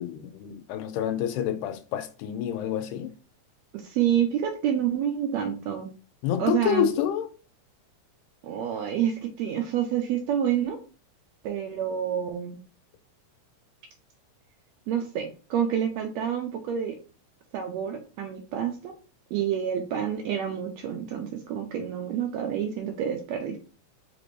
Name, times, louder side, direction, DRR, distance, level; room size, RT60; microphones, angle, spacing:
voice 1, 0.0-3.1 6.2-7.3, left 10 dB, 85° left, 2.0 m, -28 dB
voice 2, 3.7-5.9 6.4-6.9 8.4-10.8 11.4-12.6 14.9-17.0 17.5-18.9 19.3-23.6, right 9 dB, 80° right, 1.6 m, -28 dB
5.0 x 2.5 x 3.1 m
omnidirectional pair, 3.5 m